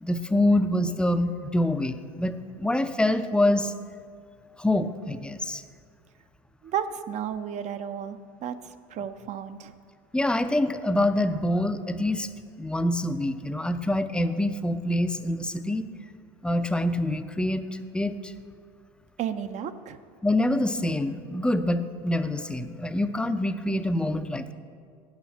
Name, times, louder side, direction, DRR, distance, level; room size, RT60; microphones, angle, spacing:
voice 1, 0.0-3.7 4.6-5.6 10.1-12.3 12.6-15.9 16.4-18.3 20.2-24.5, left 1 dB, 5° left, 10 dB, 0.5 m, -26 dB
voice 2, 6.6-9.7 19.2-20.0, right 8 dB, 40° right, 10 dB, 0.6 m, -33 dB
9.5 x 5.6 x 7.2 m, 2.1 s
hypercardioid pair, 95°, 19 cm